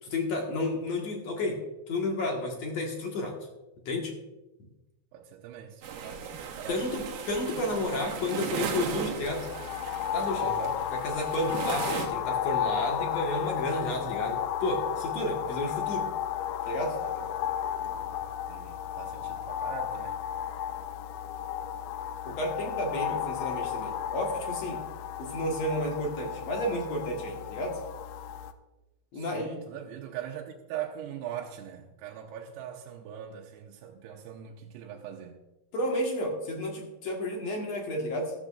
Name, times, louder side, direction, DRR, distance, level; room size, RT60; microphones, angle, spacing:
voice 1, 0.0-1.6 1.9-3.4 3.9-4.1 6.7-9.5 10.1-10.5 10.9-16.1 16.7-17.0 22.2-24.8 25.2-27.8 29.1-29.5 35.7-38.3, left 1 dB, 55° left, 2.2 m, -31 dB
voice 2, 5.1-6.8 10.4-10.7 17.0-17.1 17.4-18.2 18.5-20.2 29.1-35.4, right 10 dB, 90° right, 2.8 m, -41 dB
sound 1, 5.8-12.1, right 7 dB, 70° right, 2.6 m, -36 dB
sound 2, 9.2-28.5, left 10 dB, 80° left, 2.0 m, -33 dB
14.0 x 13.5 x 2.5 m
omnidirectional pair, 4.7 m